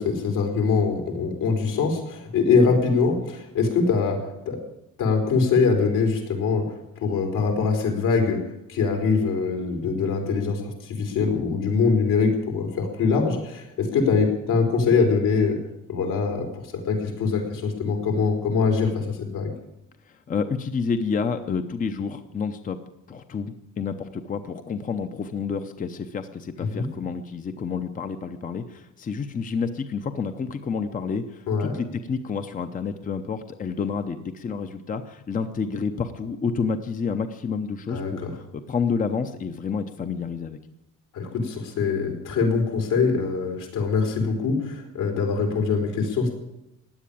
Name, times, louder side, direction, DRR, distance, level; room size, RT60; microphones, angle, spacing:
voice 1, 0.0-4.2 4.5-4.6 5.0-8.4 8.7-15.6 15.9-19.5 26.6-26.9 31.5-31.7 37.9-38.3 41.1-46.3, left 5 dB, 80° left, 3 dB, 4.2 m, -23 dB
voice 2, 20.1-22.8 23.1-40.6, left 5 dB, 25° left, 8 dB, 0.7 m, -29 dB
16.0 x 10.0 x 8.6 m, 0.87 s
cardioid pair, 170°, 32 cm